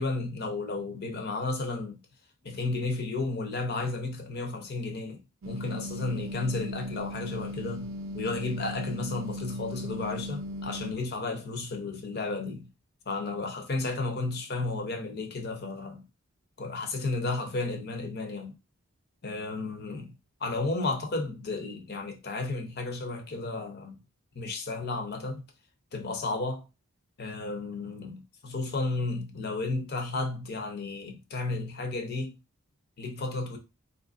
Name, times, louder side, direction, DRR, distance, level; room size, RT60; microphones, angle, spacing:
voice 1, 0.0-2.0 2.4-5.2 5.5-12.7 13.1-16.1 16.6-18.6 19.2-20.1 20.4-24.0 24.3-25.4 25.9-26.6 27.2-32.4 33.0-33.6, left 3 dB, 45° left, 0.6 m, -33 dB
sound 1, 5.4-10.9, left 1 dB, 70° right, 0.5 m, -37 dB
3.8 x 2.9 x 2.4 m
head